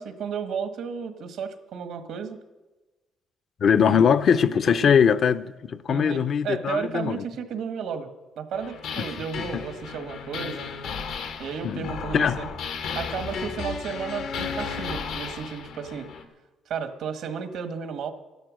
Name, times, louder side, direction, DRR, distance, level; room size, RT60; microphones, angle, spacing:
voice 1, 0.0-2.4 3.8-4.1 4.8-5.0 5.9-8.1 8.4-10.7 11.4-12.5 12.9-16.1 16.7-18.1, right 6 dB, 80° right, 1.4 m, -33 dB
voice 2, 3.6-7.2 9.4-9.6 11.6-12.4, left 7 dB, 60° left, 0.6 m, -21 dB
sound 1, 8.5-16.2, left 5 dB, 90° left, 1.4 m, -34 dB
12.5 x 12.0 x 6.3 m
cardioid pair, 90°, 0 cm